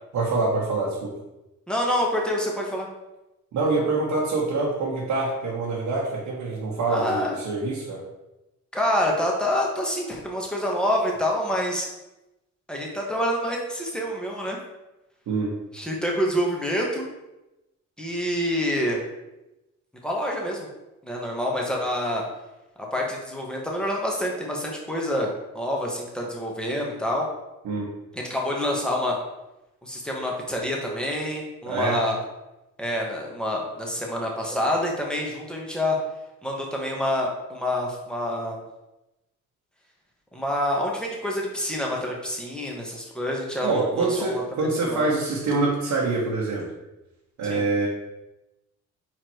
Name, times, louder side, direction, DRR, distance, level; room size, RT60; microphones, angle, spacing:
voice 1, 0.1-1.2 3.5-8.1 15.3-15.5 27.6-27.9 31.6-32.0 43.6-46.7 47.4-47.9, right 3 dB, 75° right, -5 dB, 1.5 m, -25 dB
voice 2, 1.7-2.9 6.9-7.4 8.7-11.9 12.7-14.6 15.7-17.0 18.0-19.0 20.0-20.7 21.0-22.2 22.8-27.3 28.1-29.2 29.8-32.2 32.8-36.0 36.4-38.6 40.3-44.4 44.9-45.1 47.5-47.6, left 1 dB, 5° left, -2 dB, 1.6 m, -27 dB
4.9 x 4.5 x 4.6 m, 0.97 s
cardioid pair, 90°, 30 cm